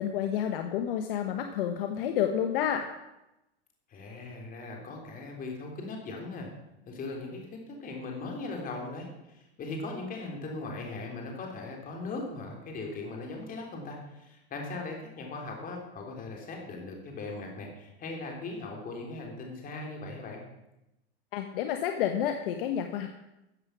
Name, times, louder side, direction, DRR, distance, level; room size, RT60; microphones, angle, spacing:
voice 1, 0.0-2.9 21.3-23.1, left 9 dB, 60° left, 6 dB, 1.2 m, -30 dB
voice 2, 3.9-6.5 6.9-20.4, left 3 dB, 25° left, 1 dB, 3.6 m, -39 dB
14.0 x 7.7 x 6.2 m, 0.93 s
hypercardioid pair, 125°, 31 cm